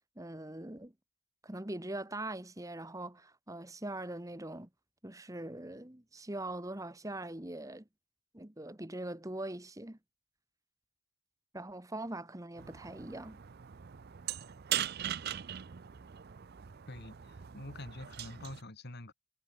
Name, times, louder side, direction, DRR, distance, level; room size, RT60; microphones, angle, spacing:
voice 1, 0.2-0.9 1.4-4.7 5.0-7.9 8.3-10.0 11.5-13.4, right 1 dB, 15° right, 1.2 m, -42 dB
sound 1, 12.6-18.6, right 11 dB, 45° right, 0.5 m, -40 dB
voice 2, 16.9-19.1, left 1 dB, 45° left, 2.2 m, -46 dB
head